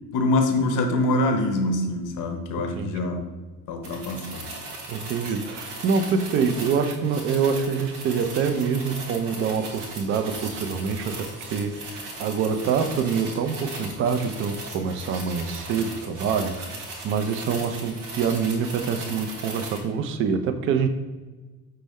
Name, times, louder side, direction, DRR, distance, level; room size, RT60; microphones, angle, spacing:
voice 1, 0.1-3.2 3.7-4.5, left 2 dB, 45° left, 5 dB, 0.7 m, -24 dB
voice 2, 2.7-3.1 4.9-20.9, right 6 dB, 30° right, 8 dB, 0.4 m, -26 dB
sound 1, 3.8-19.8, right 2 dB, 80° right, 0.8 m, -38 dB
5.0 x 2.2 x 3.4 m, 1.2 s
figure-of-eight pair, 55°, 44 cm